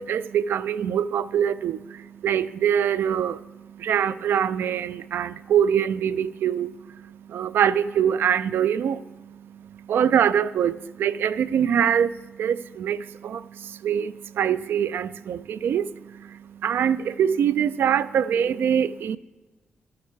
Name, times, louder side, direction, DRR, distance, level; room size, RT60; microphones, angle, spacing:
voice 1, 0.0-19.2, right 8 dB, 80° right, 0.3 m, -24 dB
12.5 x 9.6 x 4.5 m
cardioid pair, 60°, 4 cm